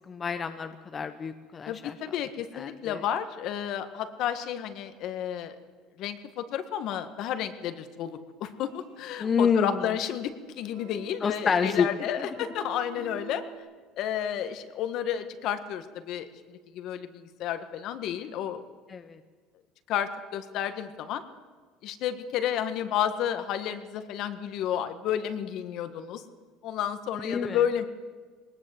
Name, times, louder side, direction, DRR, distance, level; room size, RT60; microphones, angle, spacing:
voice 1, 0.1-2.2 2.5-3.0 9.2-9.8 11.2-11.9 12.2-12.3 18.9-19.2 27.2-27.6, left 6 dB, 25° left, 8 dB, 0.9 m, -28 dB
voice 2, 1.7-5.5 6.0-10.3 10.6-13.4 14.0-18.6 19.9-21.2 21.8-26.2 26.6-27.8, left 10 dB, 55° left, 10 dB, 1.7 m, -31 dB
sound 1, 8.6-13.6, right 7 dB, 70° right, 5.3 m, -49 dB
20.5 x 19.5 x 7.9 m, 1.5 s
cardioid pair, 140°, 0 cm